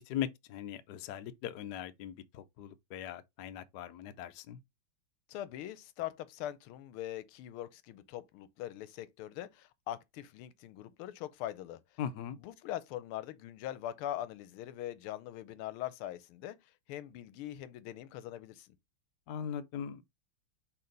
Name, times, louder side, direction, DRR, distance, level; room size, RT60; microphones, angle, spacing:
voice 1, 0.0-4.6 12.0-12.4 19.3-20.1, left 9 dB, 70° left, 1.0 m, -40 dB
voice 2, 5.3-11.8 12.4-16.6 16.9-18.7, left 12 dB, 85° left, 1.5 m, -42 dB
5.7 x 3.5 x 5.3 m
omnidirectional pair, 2.4 m